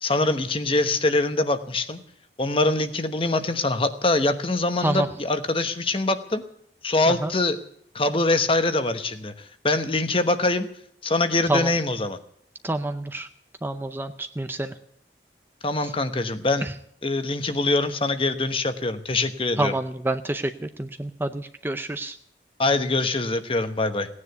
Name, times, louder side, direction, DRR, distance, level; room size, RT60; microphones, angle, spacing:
voice 1, 0.0-2.0 2.4-6.4 6.8-7.6 7.9-10.7 11.0-12.2 15.6-16.7 17.0-19.8 22.6-24.1, left 2 dB, 30° left, 9 dB, 1.1 m, -24 dB
voice 2, 12.6-13.3 13.6-14.7 16.6-16.7 19.6-22.2, right 2 dB, 10° right, 9 dB, 0.5 m, -28 dB
17.0 x 9.7 x 7.9 m, 0.69 s
head